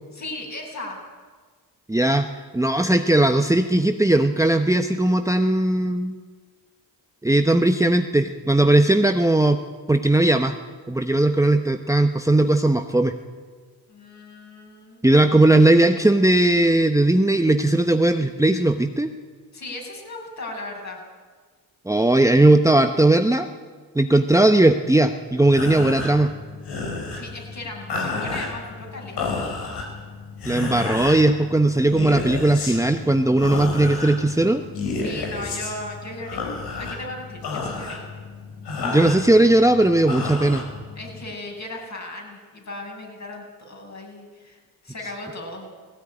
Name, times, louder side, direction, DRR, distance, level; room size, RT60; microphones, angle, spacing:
voice 1, 0.1-1.0 13.9-15.0 19.5-21.0 27.1-29.5 34.9-36.5 36.8-38.0 41.0-45.7, left 2 dB, 45° left, 0 dB, 7.2 m, -36 dB
voice 2, 1.9-2.3 2.5-6.2 7.2-9.6 9.9-10.6 10.9-13.1 15.0-19.1 21.9-23.5 23.9-26.3 30.4-34.6 38.8-40.6, right 2 dB, 10° right, 7 dB, 1.0 m, -18 dB
sound 1, 25.4-41.3, left 3 dB, 85° left, 4.5 m, -31 dB
17.5 x 16.0 x 9.9 m, 1.5 s
cardioid pair, 70°, 39 cm